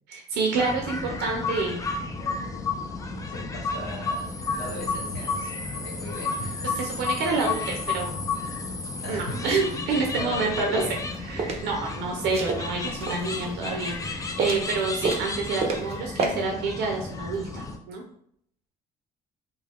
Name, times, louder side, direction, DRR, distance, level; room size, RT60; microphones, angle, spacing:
voice 1, 0.1-1.8 6.8-8.1 9.1-10.8 11.2-18.0, right 4 dB, 85° right, 0 dB, 0.6 m, -28 dB
sound 1, 0.5-17.8, left 4 dB, 20° left, 0.3 m, -32 dB
voice 2, 3.2-6.8 9.0-9.5 10.1-11.0, left 1 dB, 70° left, -5 dB, 1.2 m, -37 dB
sound 2, 10.9-11.6 12.3-13.5 13.9-14.8 15.0-16.3, right 4 dB, 40° right, 0.5 m, -29 dB
2.4 x 2.2 x 3.4 m, 0.67 s
cardioid pair, 110°, 17 cm